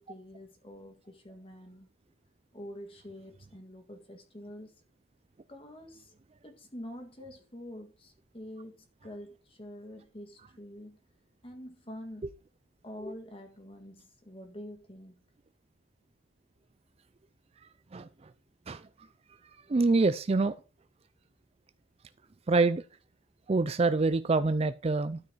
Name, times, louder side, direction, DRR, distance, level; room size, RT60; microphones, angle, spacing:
voice 1, 0.0-1.9 2.5-4.7 5.5-6.1 6.4-11.0 11.4-12.3 12.8-15.2, equal, 25° left, 1.8 m, -46 dB
voice 2, 19.7-20.6 22.5-22.8 23.5-25.2, right 3 dB, 30° right, 0.4 m, -25 dB
12.5 x 4.7 x 4.7 m
head